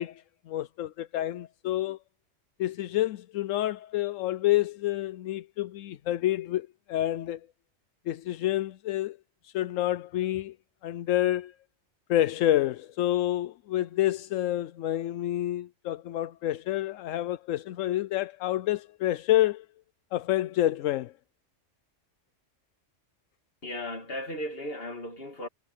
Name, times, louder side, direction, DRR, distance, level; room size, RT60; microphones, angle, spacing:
voice 1, 0.0-2.0 2.6-7.4 8.1-9.2 9.4-10.6 10.8-11.5 12.1-19.7 20.1-21.1, left 14 dB, 85° left, 1.0 m, -28 dB
voice 2, 23.6-25.5, left 1 dB, 50° left, 2.9 m, -36 dB
omnidirectional pair, 1.3 m